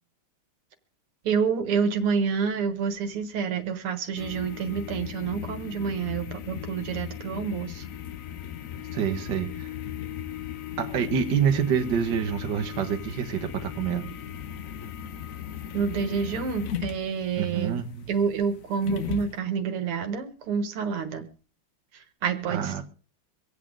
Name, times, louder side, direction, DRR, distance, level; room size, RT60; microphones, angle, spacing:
voice 1, 1.2-7.9 15.7-17.8 18.1-21.3 21.9-22.8, right 6 dB, 85° right, 2.2 m, -28 dB
sound 1, 4.2-19.4, left 10 dB, 80° left, 0.7 m, -37 dB
voice 2, 8.9-9.7 10.8-14.1 17.4-18.1 22.5-22.8, right 7 dB, 55° right, 1.7 m, -27 dB
24.5 x 8.3 x 3.7 m
omnidirectional pair, 2.4 m